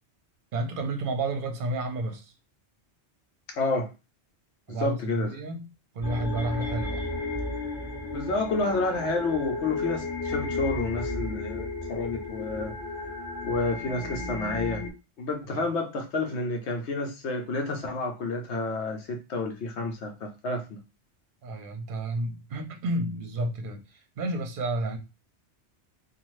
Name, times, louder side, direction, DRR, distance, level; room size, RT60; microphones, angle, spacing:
voice 1, 0.5-2.3 4.7-5.7 5.9-7.1 15.5-15.6 21.4-25.0, right 2 dB, 55° right, 0.8 m, -31 dB
voice 2, 3.5-3.9 4.7-5.3 8.1-12.7 13.4-14.8 15.2-20.8, left 3 dB, 75° left, 1.0 m, -30 dB
sound 1, 6.0-14.9, left 2 dB, 20° left, 1.3 m, -33 dB
2.6 x 2.5 x 3.1 m
omnidirectional pair, 1.2 m